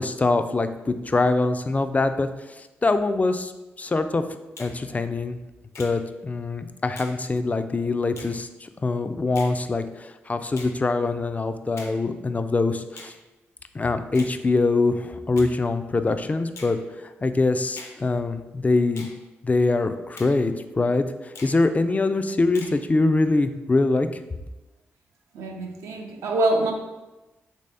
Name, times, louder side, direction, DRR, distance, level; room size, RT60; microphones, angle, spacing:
voice 1, 0.0-3.5 3.8-4.2 4.6-5.4 5.8-13.1 13.7-19.1 19.4-24.2, left 3 dB, 30° left, 9 dB, 0.3 m, -24 dB
Finger snapping, 4.6-4.8 5.7-6.0 7.0-7.2 8.1-8.4 9.3-9.6 10.5-10.8 11.8-12.0 13.0-13.2 14.1-14.4 15.3-15.5 16.5-16.8 17.7-18.0 18.9-19.2 20.2-20.4 21.3-21.6 22.5-22.8, left 3 dB, 60° left, 0.7 m, -42 dB
voice 2, 25.3-26.7, right 2 dB, 80° right, 1 dB, 0.5 m, -25 dB
3.2 x 2.7 x 3.3 m, 1.1 s
supercardioid pair, 40°, 5 cm